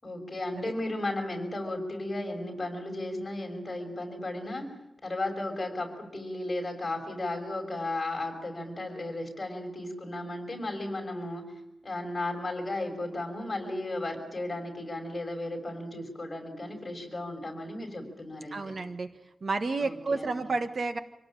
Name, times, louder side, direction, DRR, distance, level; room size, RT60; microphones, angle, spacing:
voice 1, 0.0-4.7 5.0-11.5 11.8-18.7 19.8-20.5, left 2 dB, 25° left, 3 dB, 6.4 m, -35 dB
voice 2, 18.5-19.1 19.4-21.0, right 3 dB, 50° right, 8 dB, 1.3 m, -31 dB
26.5 x 18.5 x 9.0 m, 0.90 s
wide cardioid pair, 140°, 0 cm